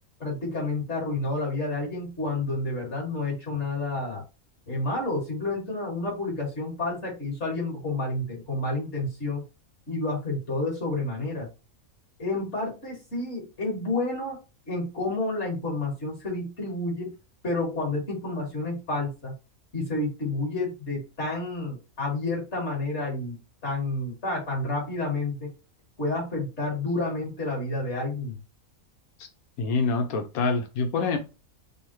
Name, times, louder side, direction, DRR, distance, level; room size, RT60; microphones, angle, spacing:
voice 1, 0.2-4.2 4.7-9.4 9.9-11.5 12.2-14.4 14.7-17.1 17.4-19.3 19.7-23.4 23.6-25.5 26.0-28.4, left 2 dB, 55° left, -2 dB, 2.3 m, -30 dB
voice 2, 29.6-31.2, left 4 dB, 90° left, 5 dB, 1.1 m, -25 dB
5.4 x 2.1 x 3.0 m, 0.29 s
omnidirectional pair, 1.5 m